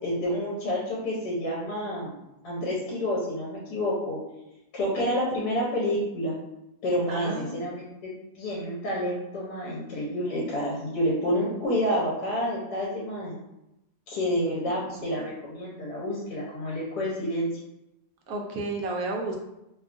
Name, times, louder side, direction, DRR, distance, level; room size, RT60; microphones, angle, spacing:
voice 1, 0.0-2.1 2.4-4.2 4.7-6.3 6.8-7.9 8.3-13.4 14.1-17.5, equal, 80° left, -5 dB, 1.2 m, -29 dB
voice 2, 7.1-7.6 15.0-15.3 18.3-19.4, right 2 dB, 70° right, 0 dB, 1.0 m, -32 dB
2.9 x 2.3 x 2.4 m, 0.90 s
omnidirectional pair, 1.7 m